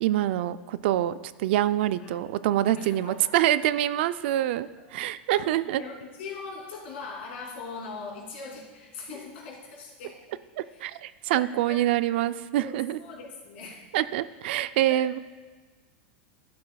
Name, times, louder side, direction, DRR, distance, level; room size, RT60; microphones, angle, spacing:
voice 1, 0.0-5.8 10.6-13.0 13.9-15.2, right 13 dB, 70° right, 15 dB, 0.4 m, -26 dB
voice 2, 5.3-10.2 10.7-10.8 11.3-12.2 12.5-13.9 14.4-14.5 14.9-15.2, left 4 dB, 80° left, -2 dB, 2.8 m, -41 dB
12.0 x 10.5 x 2.3 m, 1.3 s
supercardioid pair, 130°, 6 cm